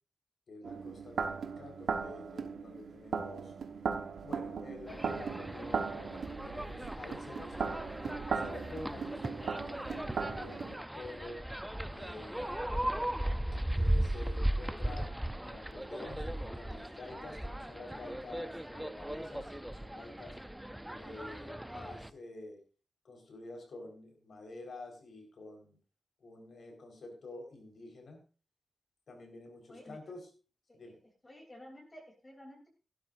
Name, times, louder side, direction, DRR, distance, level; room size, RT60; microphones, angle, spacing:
voice 1, 0.5-3.5 4.2-7.8 8.3-11.4 11.9-12.7 13.7-15.1 15.4-20.4 20.9-22.6 23.0-25.8 26.2-28.2 29.1-30.3 30.7-31.0, left 2 dB, 60° left, 3 dB, 4.2 m, -49 dB
sound 1, 0.6-10.8, right 5 dB, 85° right, 1.1 m, -38 dB
sound 2, 4.9-22.1, right 1 dB, 5° right, 0.5 m, -37 dB
voice 2, 29.7-30.0 30.7-31.0 31.2-32.7, left 1 dB, 20° left, 1 dB, 3.1 m, -52 dB
16.0 x 12.0 x 2.6 m, 0.34 s
wide cardioid pair, 180°, 0 cm